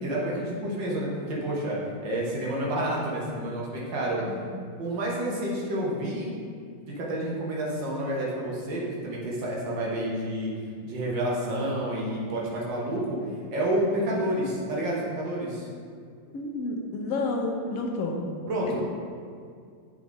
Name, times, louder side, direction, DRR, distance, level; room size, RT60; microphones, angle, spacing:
voice 1, 0.0-4.2 4.8-6.3 6.9-10.5 10.9-13.2 13.5-15.7 18.5-18.8, right 1 dB, 80° right, -4 dB, 1.8 m, -29 dB
voice 2, 16.3-18.2, left 2 dB, 65° left, 1 dB, 0.9 m, -30 dB
7.0 x 3.8 x 3.8 m, 2.2 s
omnidirectional pair, 1.9 m